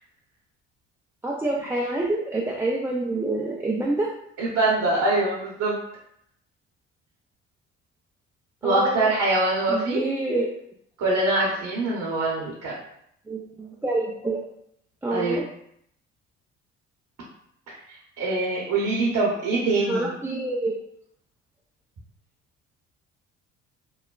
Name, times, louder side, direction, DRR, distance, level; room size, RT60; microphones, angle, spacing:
voice 1, 1.2-4.1 8.6-9.1 9.7-10.5 13.3-14.4 15.0-15.5 19.7-20.8, right 2 dB, 10° right, -4 dB, 0.3 m, -27 dB
voice 2, 4.4-5.8 8.6-10.0 11.0-12.7 15.1-15.4 18.2-20.1, right 2 dB, 60° right, -4 dB, 0.9 m, -23 dB
3.1 x 2.1 x 2.3 m, 0.71 s
hypercardioid pair, 55°, 34 cm